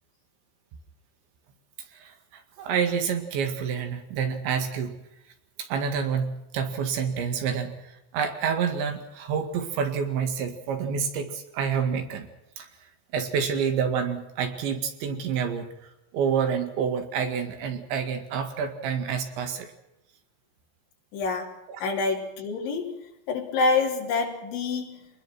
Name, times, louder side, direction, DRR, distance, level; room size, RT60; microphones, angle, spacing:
voice 1, 1.9-5.0 5.6-12.3 12.6-12.7 13.1-15.7 16.1-19.7, right 6 dB, 70° right, 7 dB, 4.1 m, -28 dB
voice 2, 21.1-21.5 21.8-23.0 23.3-25.1, left 3 dB, 65° left, 0 dB, 5.7 m, -27 dB
26.0 x 20.5 x 6.2 m, 0.86 s
omnidirectional pair, 5.7 m